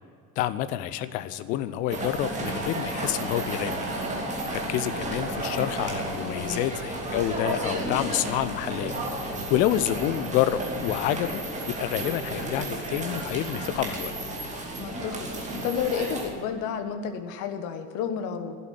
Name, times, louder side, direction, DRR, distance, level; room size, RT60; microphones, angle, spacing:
voice 1, 0.4-3.8 4.5-9.0 9.3-11.4 11.7-14.1, left 12 dB, 20° left, 14 dB, 0.3 m, -28 dB
sound 1, 1.9-16.3, right 1 dB, 15° right, 2.7 m, -32 dB
voice 2, 6.2-6.6 14.8-18.5, left 7 dB, 40° left, 8 dB, 1.4 m, -31 dB
12.0 x 8.2 x 10.0 m, 2.4 s
figure-of-eight pair, 75°, 45 cm